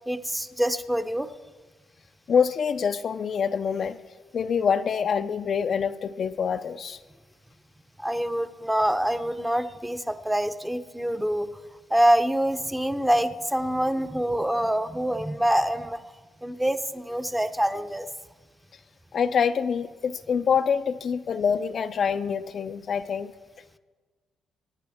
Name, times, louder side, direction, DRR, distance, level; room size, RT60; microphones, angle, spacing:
voice 1, 0.1-1.3 8.0-11.5 11.9-16.0 16.4-18.1, right 1 dB, 5° right, 9 dB, 0.7 m, -25 dB
voice 2, 2.3-4.0 4.3-7.0 19.1-23.3, left 6 dB, 55° left, 10 dB, 0.4 m, -25 dB
24.0 x 9.9 x 3.5 m, 1.4 s
cardioid pair, 90°, 0 cm